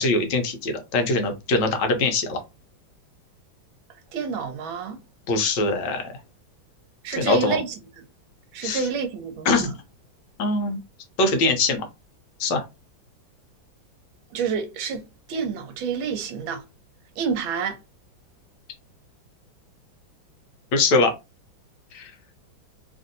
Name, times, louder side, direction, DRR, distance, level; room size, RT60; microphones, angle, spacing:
voice 1, 0.0-2.4 5.3-6.1 7.1-7.6 8.6-8.9 9.4-9.7 10.4-10.8 11.2-11.9 12.4-12.6 20.7-21.1 21.9-22.1, left 3 dB, 70° left, 1.3 m, -22 dB
voice 2, 4.1-5.0 7.0-7.7 8.5-9.7 14.3-15.0 15.3-16.6 17.2-17.8, right 6 dB, 80° right, 1.5 m, -28 dB
3.4 x 2.6 x 2.6 m
omnidirectional pair, 2.1 m